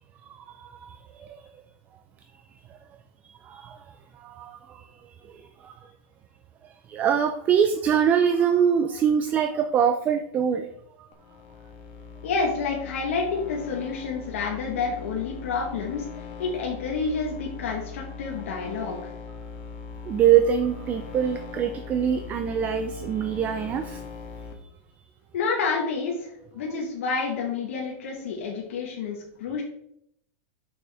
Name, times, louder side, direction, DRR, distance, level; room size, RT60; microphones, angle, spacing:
voice 1, 0.3-1.5 3.2-5.7 6.6-10.7 11.0-11.1 20.1-24.0, right 8 dB, 20° right, 7 dB, 0.4 m, -24 dB
sound 1, 11.1-24.5, left 5 dB, 50° left, 1.4 m, -40 dB
voice 2, 12.2-16.1 16.4-19.1 25.3-29.6, left 4 dB, 80° left, -1 dB, 1.4 m, -29 dB
6.2 x 6.1 x 3.5 m, 0.72 s
supercardioid pair, 155°, 7 cm